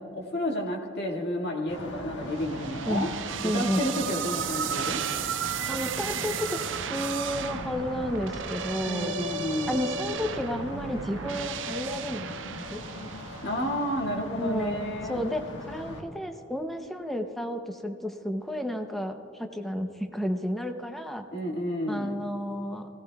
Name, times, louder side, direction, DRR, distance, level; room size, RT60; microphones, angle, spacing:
voice 1, 0.1-3.1 3.5-5.0 8.9-9.9 13.4-15.2 21.3-22.2, equal, 60° left, -1 dB, 2.1 m, -31 dB
sound 1, 1.7-16.0, left 1 dB, 75° left, 1.6 m, -40 dB
sound 2, 2.4-13.7, right 7 dB, 80° right, 0.5 m, -34 dB
voice 2, 3.4-3.9 5.7-9.1 9.7-12.8 14.4-21.2 21.9-22.9, equal, ahead, 5 dB, 0.7 m, -32 dB
18.0 x 17.0 x 2.4 m, 2.6 s
head